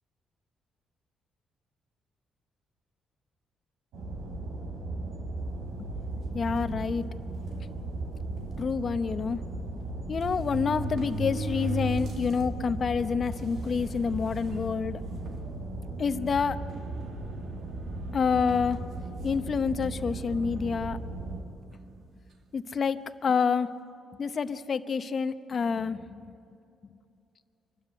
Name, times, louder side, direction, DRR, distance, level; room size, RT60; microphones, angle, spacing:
sound 1, 3.9-21.4, right 2 dB, 85° right, 4.3 m, -37 dB
voice 1, 6.3-7.1 8.6-9.4 10.1-15.0 16.0-16.6 18.1-18.8 19.2-21.0 22.5-23.7 24.2-26.2, left 5 dB, 45° left, 11 dB, 0.9 m, -28 dB
sound 2, 6.6-6.8 7.6-7.7 8.0-8.1 9.4-9.5 10.2-12.4 12.9-13.0 13.8-13.9 14.3-14.6 15.2-15.4 16.7-17.5 18.5-18.7, right 2 dB, 70° right, 2.2 m, -35 dB
25.0 x 13.0 x 9.4 m, 2.6 s
cardioid pair, 90°, 0 cm